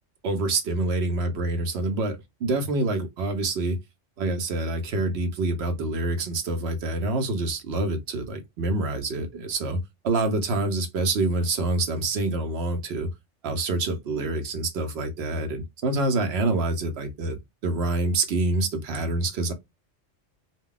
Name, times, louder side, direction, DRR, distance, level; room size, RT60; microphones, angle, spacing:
voice 1, 0.2-3.8 4.2-13.1 13.4-17.4 17.6-19.5, right 2 dB, 60° right, 0.9 m, -26 dB
2.2 x 2.2 x 3.7 m
omnidirectional pair, 1.3 m